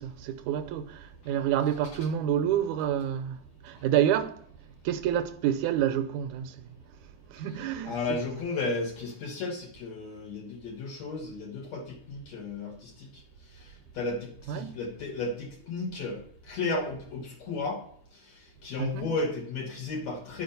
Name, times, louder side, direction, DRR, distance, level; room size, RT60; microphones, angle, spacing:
voice 1, 0.0-3.4 3.6-4.3 4.9-6.6 7.3-8.2 14.5-14.7 18.8-19.1, right 10 dB, 80° right, 2.0 m, -28 dB
voice 2, 7.9-13.1 14.0-16.2 16.5-17.8 18.6-20.4, left 3 dB, 65° left, 2.3 m, -33 dB
10.0 x 5.1 x 5.3 m
omnidirectional pair, 3.5 m